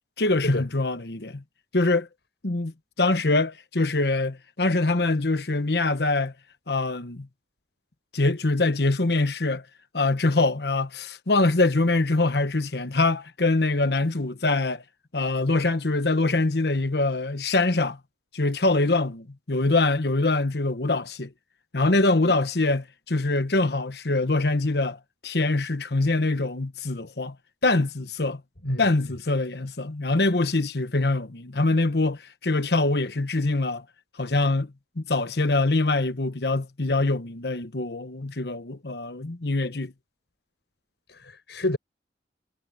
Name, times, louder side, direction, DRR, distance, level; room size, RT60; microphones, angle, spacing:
voice 1, 0.2-1.4 1.7-2.1 2.4-2.7 3.0-6.3 6.7-7.3 8.1-9.6 9.9-14.8 15.1-18.0 18.3-21.3 21.7-27.3 27.6-28.4 28.8-33.8 34.2-39.9, left 2 dB, 65° left, 1.2 m, -24 dB
voice 2, 41.1-41.8, left 1 dB, 85° left, 5.5 m, -28 dB
head